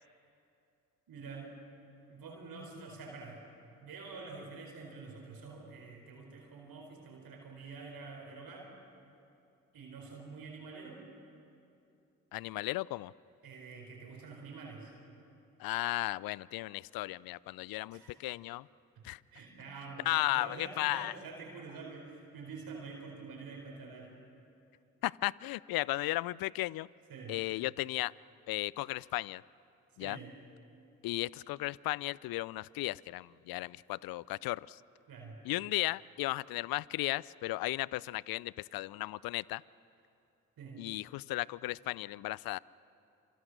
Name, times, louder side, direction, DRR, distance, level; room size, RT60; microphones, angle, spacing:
voice 1, 1.1-1.5 2.1-3.4 3.8-8.7 9.7-11.0 13.4-14.9 17.9-18.2 18.9-19.0 19.3-24.1 27.1-27.4 30.0-30.3 35.1-35.4 40.6-40.8, right 4 dB, 60° right, 1 dB, 4.7 m, -47 dB
voice 2, 12.3-13.1 15.6-18.7 19.0-19.2 20.1-21.1 25.0-26.9 27.3-28.1 28.5-29.4 30.0-30.2 31.0-34.8 35.4-39.6 40.8-42.6, left 18 dB, 65° left, 23 dB, 0.5 m, -35 dB
26.5 x 26.5 x 6.6 m, 2.7 s
hypercardioid pair, 40°, 39 cm